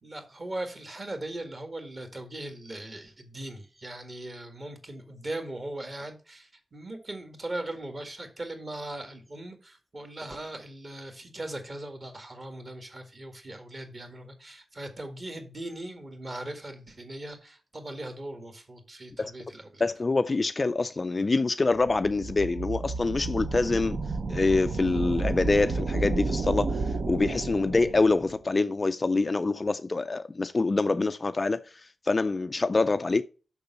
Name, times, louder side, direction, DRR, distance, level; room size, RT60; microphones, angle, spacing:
voice 1, 0.0-19.8, right 1 dB, 30° right, 1.7 m, -39 dB
voice 2, 19.8-24.0 24.3-33.2, left 3 dB, 25° left, 0.4 m, -25 dB
sound 1, 21.8-28.3, right 3 dB, 50° right, 0.7 m, -31 dB
6.8 x 6.1 x 5.5 m
wide cardioid pair, 175°, 0 cm